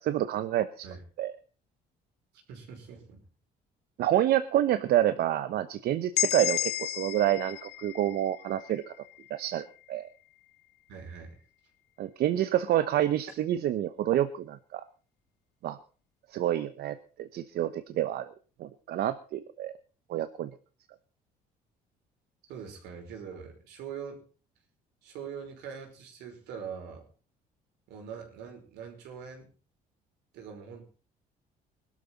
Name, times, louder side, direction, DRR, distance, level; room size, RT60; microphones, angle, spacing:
voice 1, 0.0-0.9 1.2-1.3 4.0-8.9 9.3-10.1 12.0-14.8 15.6-15.8 16.3-18.3 18.6-19.7 20.1-20.5, right 12 dB, 70° right, 11 dB, 1.0 m, -28 dB
voice 2, 2.5-3.2 10.9-11.4 22.5-24.2 25.0-27.1 27.9-29.5 30.3-30.9, right 7 dB, 85° right, 3 dB, 5.5 m, -43 dB
sound 1, 6.2-10.0, left 15 dB, 75° left, 0.7 m, -33 dB
21.0 x 12.5 x 4.2 m, 0.38 s
cardioid pair, 110°, 17 cm